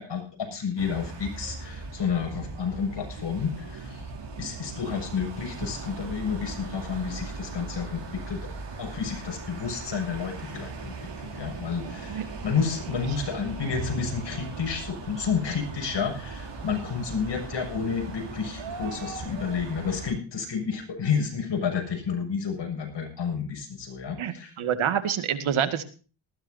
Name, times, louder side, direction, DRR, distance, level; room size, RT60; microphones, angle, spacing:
voice 1, 0.0-4.1 4.4-8.5 8.8-24.5, left 6 dB, 55° left, 3 dB, 7.1 m, -30 dB
sound 1, 0.8-20.1, right 4 dB, 60° right, 6.3 m, -39 dB
Bowed string instrument, 13.7-17.1, right 3 dB, 75° left, 4.5 m, -42 dB
voice 2, 24.2-25.9, right 8 dB, 75° right, 10 dB, 2.1 m, -27 dB
19.0 x 15.0 x 2.7 m, 0.36 s
cardioid pair, 95°, 49 cm